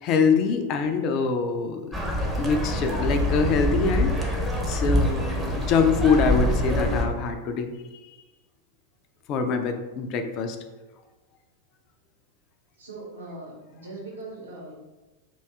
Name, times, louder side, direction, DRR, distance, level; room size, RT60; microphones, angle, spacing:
voice 1, 0.0-1.9 2.4-7.7 9.3-10.6, left 5 dB, 40° left, 6 dB, 0.3 m, -24 dB
sound 1, 1.9-7.0, left 1 dB, 10° right, 0.6 m, -25 dB
voice 2, 12.8-14.7, right 2 dB, 70° right, -3 dB, 0.8 m, -40 dB
2.6 x 2.2 x 3.4 m, 1.2 s
figure-of-eight pair, 90°, 0 cm